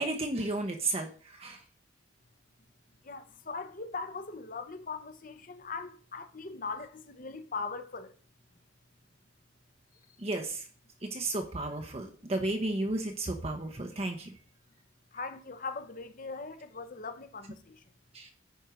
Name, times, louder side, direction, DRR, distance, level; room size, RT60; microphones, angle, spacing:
voice 1, 0.0-1.6 10.2-10.7 11.0-14.3 18.1-18.3, right 2 dB, 30° right, 0.8 m, -33 dB
voice 2, 3.0-8.1 15.1-17.8, left 4 dB, 45° left, 0.9 m, -40 dB
9.4 x 4.4 x 5.0 m
head